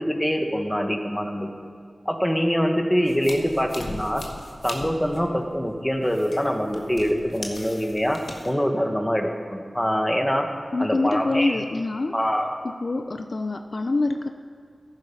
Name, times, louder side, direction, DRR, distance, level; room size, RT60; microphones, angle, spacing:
voice 1, 0.0-1.5 2.0-4.2 4.6-10.5 10.8-11.6 12.1-12.5, equal, 10° left, 4 dB, 1.7 m, -24 dB
sound 1, 3.1-8.5, left 2 dB, 80° left, 1.6 m, -39 dB
voice 2, 10.7-12.2 12.8-14.3, left 2 dB, 60° left, 7 dB, 0.6 m, -25 dB
13.5 x 11.0 x 5.6 m, 2.1 s
cardioid pair, 45°, 0 cm